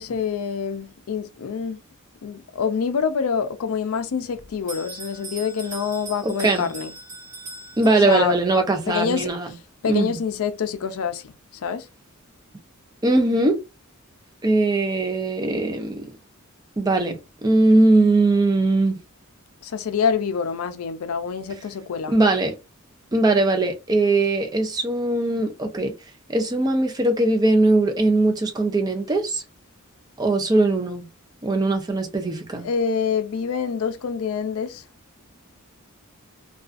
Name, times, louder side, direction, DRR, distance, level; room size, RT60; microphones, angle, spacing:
voice 1, 0.0-1.8 2.2-6.9 8.0-8.4 8.9-9.3 9.8-11.9 19.6-22.1 32.6-34.8, left 6 dB, 75° left, 0.4 m, -26 dB
Bell, 4.7-8.4, right 2 dB, 40° right, 1.5 m, -39 dB
voice 2, 6.2-6.7 7.8-9.5 9.9-10.2 13.0-13.6 14.4-16.1 16.8-19.0 22.1-22.6 23.1-25.9 26.3-29.4 30.2-31.0 31.4-32.7, right 2 dB, 20° right, 0.4 m, -20 dB
2.4 x 2.3 x 2.4 m
head